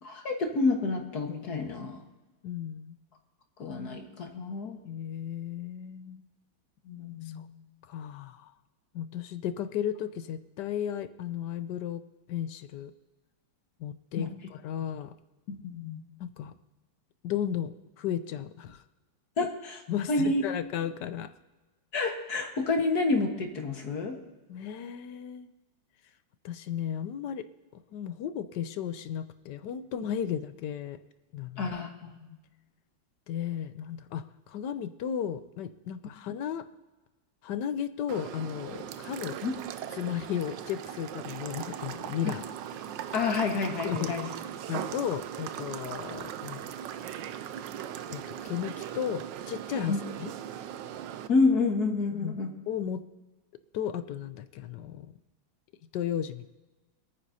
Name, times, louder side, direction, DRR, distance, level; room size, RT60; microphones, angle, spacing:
voice 1, 0.0-2.0 3.6-4.8 6.9-7.5 14.2-14.3 15.5-16.0 19.4-19.8 20.1-20.4 21.9-24.2 31.6-32.4 39.4-39.5 42.2-42.4 43.1-44.3 49.9-50.0 51.3-52.5, left 3 dB, 55° left, 3 dB, 2.0 m, -29 dB
voice 2, 2.4-3.0 4.8-6.2 7.4-7.5 7.9-8.5 8.9-12.0 12.3-12.9 13.8-15.1 16.2-16.5 17.2-18.8 19.9-21.3 24.5-25.5 26.4-27.5 27.9-31.0 31.3-31.7 33.3-36.7 37.4-39.4 40.0-42.4 43.8-44.2 44.7-46.7 48.1-50.3 52.1-52.4 52.7-53.0 53.7-55.1 55.9-56.5, left 9 dB, 70° left, 12 dB, 1.2 m, -34 dB
sound 1, 38.1-51.3, right 10 dB, 75° right, 1.2 m, -39 dB
26.5 x 9.5 x 2.8 m, 1.2 s
omnidirectional pair, 2.1 m